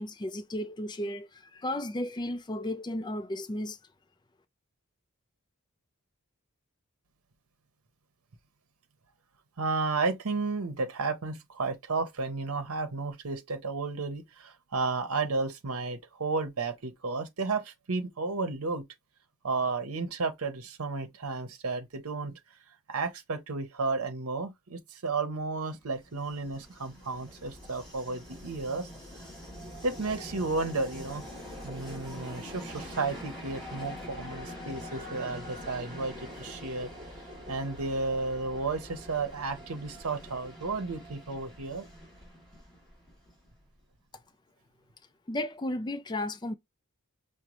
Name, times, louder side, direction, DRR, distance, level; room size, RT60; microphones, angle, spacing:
voice 1, 0.0-3.8 45.3-46.5, left 1 dB, 20° left, 0.4 m, -34 dB
voice 2, 9.6-18.8 19.4-22.4 22.9-28.9 29.8-31.2 31.6-36.9 37.5-41.9, right 3 dB, 80° right, 0.8 m, -33 dB
Train, 25.9-43.7, equal, 5° left, 2.4 m, -44 dB
5.1 x 2.1 x 2.9 m
head